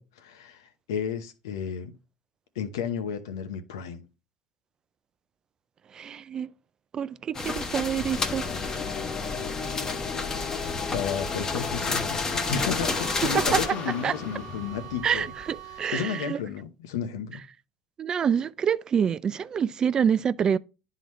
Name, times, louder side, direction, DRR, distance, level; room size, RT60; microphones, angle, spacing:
voice 1, 0.0-1.9 2.6-4.0 10.9-15.3 15.7-17.4, left 7 dB, 90° left, 0.9 m, -32 dB
voice 2, 5.9-6.5 6.9-8.5 8.7-9.0 13.3-13.6 14.0-14.1 15.0-16.4 18.0-20.6, right 7 dB, 35° right, 0.3 m, -26 dB
sound 1, 7.3-13.7, left 3 dB, 25° left, 1.0 m, -30 dB
sound 2, 7.9-16.0, left 6 dB, 50° left, 0.7 m, -36 dB
sound 3, 12.2-16.4, right 14 dB, 75° right, 0.9 m, -44 dB
10.5 x 3.8 x 3.1 m
supercardioid pair, 90°, 2 cm